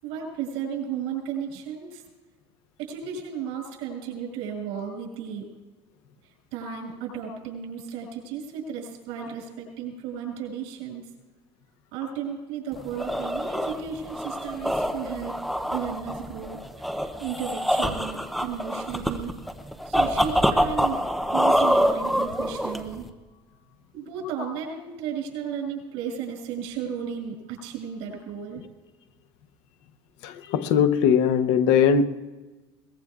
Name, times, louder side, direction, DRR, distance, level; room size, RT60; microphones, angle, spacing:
voice 1, 0.0-2.0 2.8-5.5 6.2-11.0 11.9-15.4 15.7-19.4 19.8-21.0 21.3-23.7 23.9-28.7, right 7 dB, 85° right, 6.0 m, -34 dB
sound 1, 12.7-23.1, equal, ahead, 0.6 m, -26 dB
voice 2, 30.2-32.0, left 7 dB, 80° left, 0.8 m, -20 dB
22.0 x 20.0 x 2.4 m
cardioid pair, 170°, 10 cm